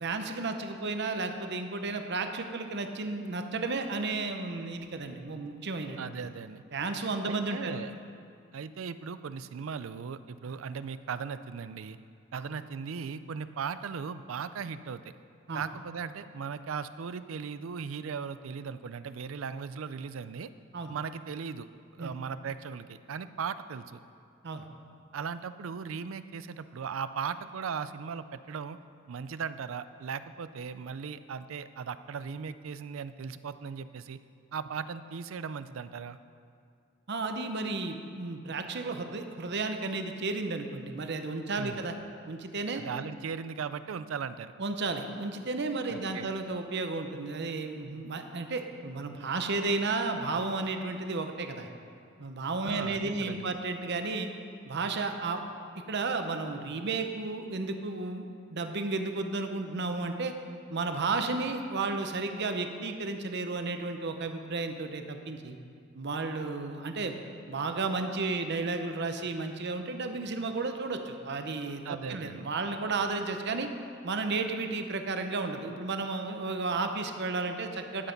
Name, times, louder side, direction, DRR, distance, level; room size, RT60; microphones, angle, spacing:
voice 1, 0.0-6.0 6.7-7.8 12.3-12.4 15.5-15.6 20.7-20.9 22.0-22.1 24.4-24.6 37.1-42.0 42.3-42.8 44.6-51.7 52.2-54.3 54.6-55.4 55.9-60.3 60.7-65.6 65.9-67.1 67.5-73.7 74.0-78.1, right 3 dB, 55° right, 6 dB, 0.8 m, -33 dB
voice 2, 6.0-6.6 7.2-7.9 8.5-12.0 12.3-15.1 15.5-20.5 20.9-21.7 21.9-24.0 25.1-28.8 29.1-34.2 34.5-36.2 41.6-41.8 42.8-44.5 45.9-46.3 52.6-53.5 71.8-72.5, right 6 dB, 75° right, 13 dB, 0.4 m, -38 dB
12.5 x 8.2 x 5.2 m, 2.3 s
head